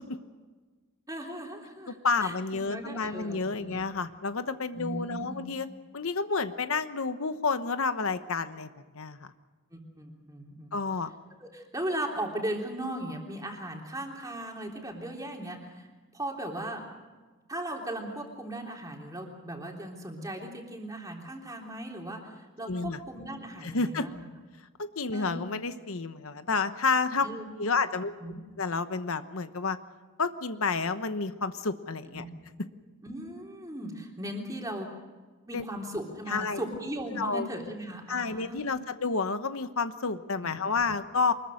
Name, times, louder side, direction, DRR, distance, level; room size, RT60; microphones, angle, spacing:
voice 1, 1.1-3.8 4.8-5.4 9.7-10.7 11.4-15.9 16.1-16.8 17.5-24.2 25.1-25.5 27.2-27.4 28.2-28.4 32.1-32.3 33.0-34.9 35.5-38.8 40.4-40.6, right 1 dB, 15° right, 1 dB, 3.4 m, -37 dB
voice 2, 2.0-5.7 5.9-8.7 8.9-9.3 10.7-11.1 22.7-23.0 23.6-24.1 24.8-27.3 27.6-28.1 28.6-29.8 30.2-32.2 35.5-35.6 36.3-36.6 37.2-37.5 38.1-41.3, left 4 dB, 70° left, 10 dB, 1.0 m, -30 dB
24.5 x 21.0 x 6.5 m, 1.3 s
head